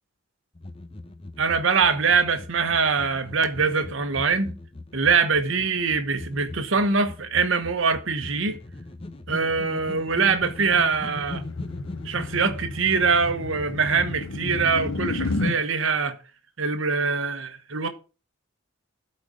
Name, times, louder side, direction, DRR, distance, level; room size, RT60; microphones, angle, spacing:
sound 1, 0.6-12.7, left 2 dB, 25° left, 0.8 m, -40 dB
voice 1, 1.4-4.6 4.9-8.6 9.3-11.4 12.0-16.2 16.6-17.9, right 5 dB, 70° right, 1.1 m, -23 dB
sound 2, 10.3-15.6, left 3 dB, 80° left, 0.9 m, -32 dB
12.5 x 4.4 x 5.1 m
head